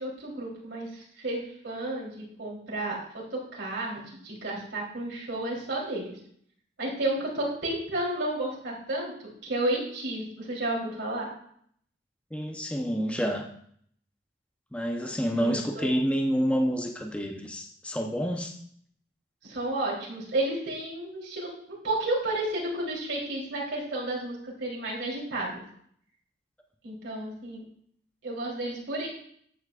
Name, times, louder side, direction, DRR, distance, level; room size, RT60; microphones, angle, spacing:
voice 1, 0.0-6.2 6.8-11.3 15.3-16.0 19.4-25.6 26.8-27.6 28.2-29.1, right 1 dB, 90° right, -3 dB, 3.4 m, -32 dB
voice 2, 12.3-13.5 14.7-18.6, equal, 5° left, 2 dB, 0.8 m, -28 dB
13.5 x 8.4 x 2.5 m, 0.64 s
head